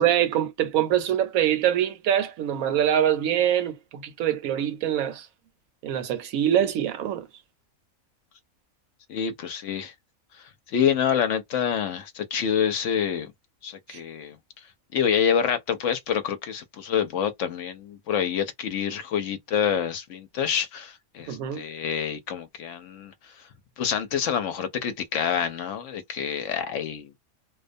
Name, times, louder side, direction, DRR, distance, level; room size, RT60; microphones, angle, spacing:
voice 1, 0.0-5.3 5.8-7.2 13.9-14.0 21.3-21.6, right 10 dB, 80° right, 1.0 m, -24 dB
voice 2, 9.1-9.9 10.7-13.3 13.6-14.4 14.9-23.1 23.8-27.1, left 8 dB, 70° left, 0.8 m, -27 dB
2.3 x 2.2 x 2.5 m
omnidirectional pair, 1.4 m